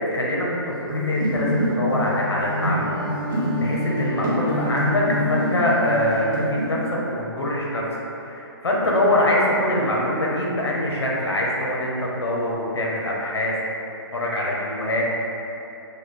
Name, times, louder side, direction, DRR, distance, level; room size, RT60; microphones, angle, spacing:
voice 1, 0.0-3.0 3.5-7.8 8.2-13.6 14.1-15.0, left 1 dB, 80° left, -3 dB, 0.9 m, -24 dB
sound 1, 0.9-5.5 5.8-6.6, left 1 dB, 50° right, 1.0 m, -26 dB
Wind instrument woodwind instrument, 2.7-7.1, right 1 dB, 15° left, 1.4 m, -34 dB
4.1 x 2.3 x 3.2 m, 2.9 s
hypercardioid pair, 150°, 13 cm